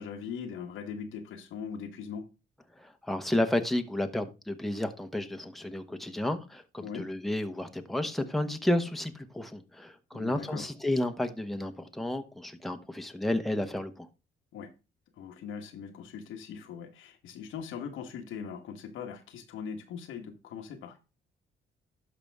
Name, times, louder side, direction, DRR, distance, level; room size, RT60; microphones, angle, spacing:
voice 1, 0.0-2.3 6.8-7.1 10.1-10.7 14.5-14.7 15.2-21.0, left 6 dB, 85° left, 1.4 m, -40 dB
voice 2, 2.8-14.1, left 1 dB, ahead, 1.1 m, -31 dB
11.5 x 5.3 x 3.5 m
cardioid pair, 90°, 20 cm